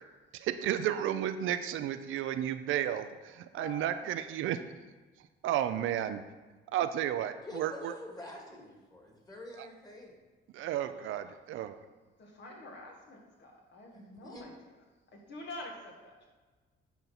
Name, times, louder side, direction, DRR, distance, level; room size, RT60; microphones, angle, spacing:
voice 1, 0.3-4.6 5.2-6.2 6.7-7.9 9.6-9.7 10.5-11.7, right 11 dB, 85° right, 10 dB, 0.6 m, -33 dB
voice 2, 3.5-4.2 10.6-11.7 12.2-14.8 15.1-16.1, left 2 dB, 60° left, -1 dB, 2.1 m, -48 dB
voice 3, 7.5-10.2 13.9-14.4, left 1 dB, 20° left, 0 dB, 2.2 m, -47 dB
9.4 x 4.0 x 5.9 m, 1.3 s
cardioid pair, 90°, 20 cm